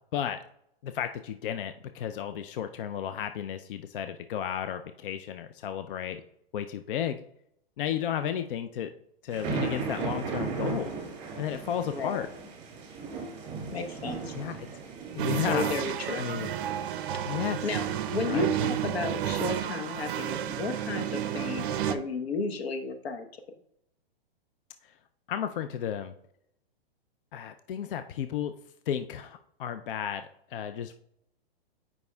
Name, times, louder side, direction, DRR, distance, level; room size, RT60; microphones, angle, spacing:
voice 1, 0.1-0.4 0.8-6.2 6.5-7.2 7.8-8.9 9.2-10.9 11.4-12.3 14.3-14.7 15.1-15.7 16.1-16.5 17.2-17.7 18.2-18.5 24.8-24.9 25.3-26.1 27.3-28.5 28.9-30.9, left 9 dB, 60° left, 9 dB, 0.4 m, -33 dB
sound 1, 9.3-21.8, right 5 dB, 25° right, 2.3 m, -39 dB
voice 2, 11.9-12.2 13.7-14.3 15.5-16.2 17.4-17.9 18.1-23.3, left 4 dB, 85° left, 6 dB, 1.0 m, -33 dB
sound 2, 15.2-22.0, right 10 dB, 60° right, 0.5 m, -31 dB
9.4 x 5.3 x 2.2 m, 0.74 s
hypercardioid pair, 145°, 30 cm